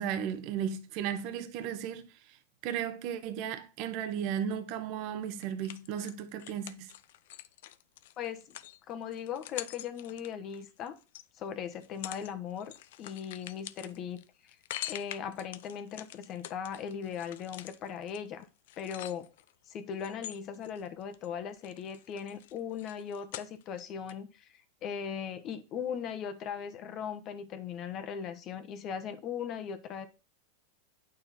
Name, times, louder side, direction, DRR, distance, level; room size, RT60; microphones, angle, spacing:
voice 1, 0.0-2.4 2.6-6.9, right 8 dB, 50° right, 1.2 m, -35 dB
sound 1, 5.4-11.3 11.7-12.3 12.6-19.5 20.0-21.3 21.6-23.8 24.1-24.2, left 14 dB, 65° left, 0.6 m, -45 dB
voice 2, 8.2-8.5 8.9-11.0 11.4-12.7 13.0-14.2 14.8-18.5 18.8-19.3 19.7-24.5 24.8-30.1, left 8 dB, 35° left, 1.2 m, -38 dB
9.0 x 6.6 x 4.3 m
supercardioid pair, 140°, 0 cm